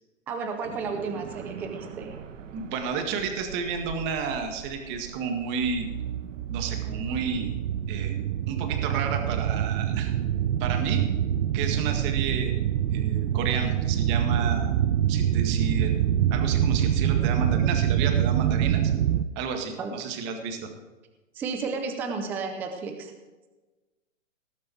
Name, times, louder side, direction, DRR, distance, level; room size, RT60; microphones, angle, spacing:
voice 1, 0.3-2.2 19.8-19.9 21.3-23.1, right 4 dB, 5° right, 5 dB, 0.4 m, -32 dB
sound 1, 0.6-9.1, right 7 dB, 70° right, 1.2 m, -43 dB
voice 2, 2.5-5.9 6.5-7.5 7.9-10.1 10.6-11.0 11.5-12.6 12.9-14.7 15.1-18.9 19.4-20.7, right 5 dB, 30° right, 4 dB, 1.8 m, -31 dB
sound 2, 5.4-19.2, right 10 dB, 55° right, 0.7 m, -25 dB
18.5 x 7.5 x 4.6 m, 1.2 s
hypercardioid pair, 140°, 39 cm